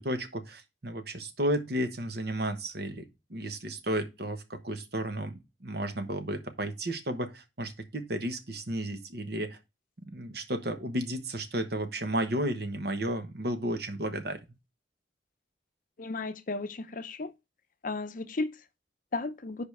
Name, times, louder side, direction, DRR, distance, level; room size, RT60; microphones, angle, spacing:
voice 1, 0.0-9.6 10.0-14.4, right 1 dB, 55° right, 1.1 m, -33 dB
voice 2, 16.0-17.3 17.8-18.5 19.1-19.6, left 3 dB, 45° left, 0.6 m, -34 dB
5.2 x 5.0 x 6.4 m
head